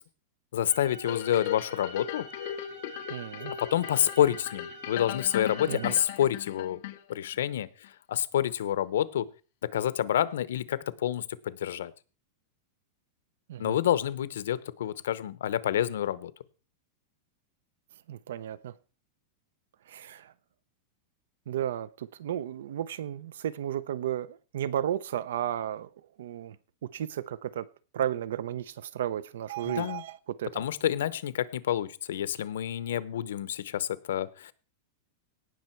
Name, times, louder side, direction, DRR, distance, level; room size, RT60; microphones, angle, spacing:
voice 1, 0.5-2.3 3.6-6.8 7.1-7.7 8.1-9.3 9.6-11.9 13.6-16.3 29.7-30.0 30.5-34.5, left 11 dB, 90° left, 0.8 m, -28 dB
sound 1, 0.6-6.0, right 3 dB, 55° right, 3.6 m, -47 dB
sound 2, 1.1-7.4 7.8-7.9, left 13 dB, 45° left, 0.8 m, -37 dB
voice 2, 3.1-3.5 5.7-5.9 13.5-13.8 18.1-18.7 19.9-20.3 21.5-26.6 26.8-27.7 27.9-30.6, right 11 dB, 75° right, 0.6 m, -33 dB
17.5 x 6.4 x 4.5 m
supercardioid pair, 175°, 0 cm